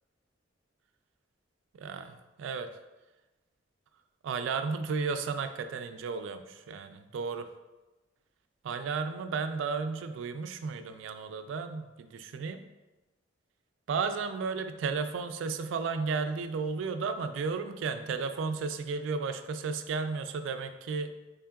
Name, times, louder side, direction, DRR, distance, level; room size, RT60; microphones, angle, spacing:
voice 1, 1.8-2.7 4.2-7.5 8.6-12.7 13.9-21.1, right 5 dB, 85° right, 9 dB, 0.3 m, -33 dB
3.7 x 3.6 x 2.3 m, 1.1 s
head